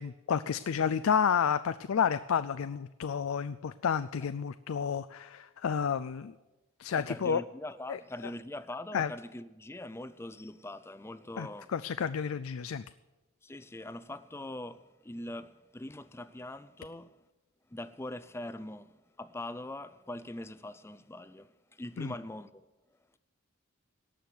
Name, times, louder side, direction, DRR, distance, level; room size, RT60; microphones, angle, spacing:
voice 1, 0.0-6.3 6.8-7.4 7.9-8.0 8.9-9.1 11.4-12.8 22.0-22.1, left 7 dB, 80° left, 0.4 m, -30 dB
voice 2, 6.9-11.7 13.4-17.2 17.7-22.7, left 1 dB, 10° left, 0.5 m, -42 dB
18.5 x 6.3 x 9.4 m
head